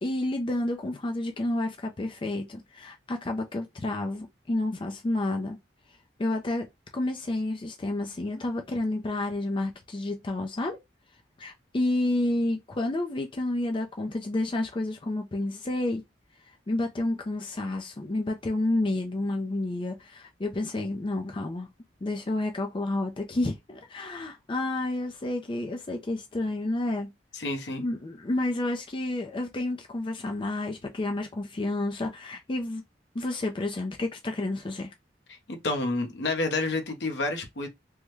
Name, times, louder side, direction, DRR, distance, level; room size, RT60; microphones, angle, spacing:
voice 1, 0.0-5.6 6.2-6.7 6.9-10.8 11.4-16.0 16.4-21.7 22.0-27.1 27.8-32.8 33.1-34.9, left 2 dB, 30° left, 0.4 m, -30 dB
voice 2, 27.3-27.8 35.3-37.7, left 2 dB, 65° left, 0.8 m, -29 dB
3.4 x 2.1 x 3.0 m
head